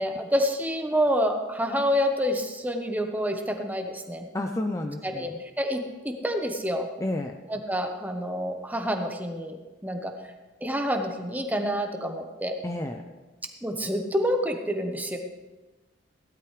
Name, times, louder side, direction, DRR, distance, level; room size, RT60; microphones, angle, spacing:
voice 1, 0.0-4.3 5.0-6.9 7.5-9.6 9.8-10.1 10.6-12.5 13.6-15.2, equal, 10° right, 4 dB, 1.1 m, -28 dB
voice 2, 4.3-5.2 7.0-7.3 12.6-13.0, left 1 dB, 15° left, 4 dB, 0.6 m, -30 dB
16.5 x 12.0 x 3.3 m, 1.2 s
head